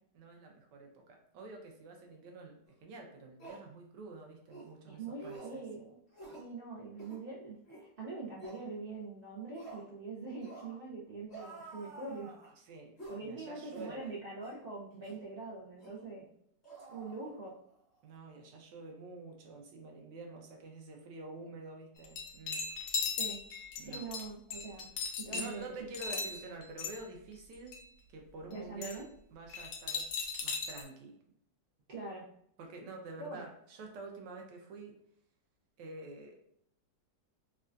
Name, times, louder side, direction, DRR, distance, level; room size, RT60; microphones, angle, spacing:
voice 1, 0.1-5.6 12.6-14.2 16.9-17.1 18.0-22.7 23.8-24.1 25.3-27.8 28.1-29.0 29.3-30.1 30.4-31.2 32.6-35.0 35.8-36.4, right 3 dB, 85° right, 2 dB, 1.3 m, -48 dB
sound 1, 2.7-2.8 3.4-3.7 4.5-4.7 5.2-5.6 6.1-6.5 6.9-7.2 7.7-7.9 8.4-8.6 9.5-9.9 10.4-10.8 11.3-12.5 13.0-13.2 13.7-14.0 14.4-14.6 15.0-15.2 15.8-16.0 16.6-17.7 18.0-18.2, right 2 dB, 40° left, 1.1 m, -49 dB
voice 2, 4.9-6.0 6.4-12.3 13.1-16.3 16.9-17.5 23.2-23.4 23.8-24.9 25.2-25.6 26.1-26.3 28.5-29.0 31.9-32.3 33.2-33.5, right 3 dB, 65° right, -6 dB, 0.5 m, -43 dB
sound 2, 22.0-25.6 25.9-27.0 27.5-27.8 28.8-28.9 29.5-30.8, left 5 dB, 75° left, 1.2 m, -37 dB
3.5 x 2.2 x 2.4 m, 0.69 s
omnidirectional pair, 1.9 m